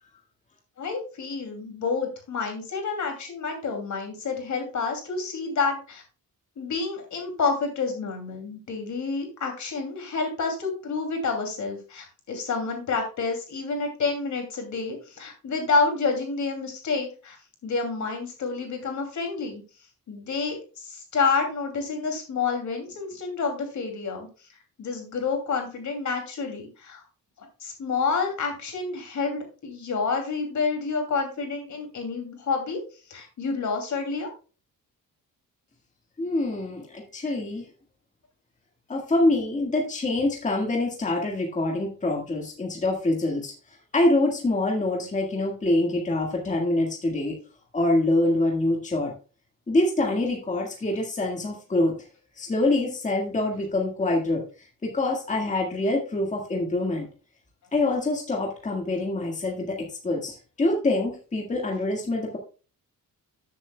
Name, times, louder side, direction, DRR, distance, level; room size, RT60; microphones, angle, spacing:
voice 1, 0.8-6.0 6.6-17.4 17.6-19.6 20.1-24.3 24.8-27.0 27.6-32.8 33.1-34.3, left 4 dB, 55° left, 4 dB, 2.7 m, -29 dB
voice 2, 36.2-37.7 38.9-43.5 43.9-47.4 47.7-49.1 49.7-51.9 52.4-54.4 54.8-57.1 57.7-62.4, left 2 dB, 20° left, 0 dB, 1.7 m, -25 dB
13.5 x 7.6 x 2.2 m, 0.35 s
wide cardioid pair, 180°, 35 cm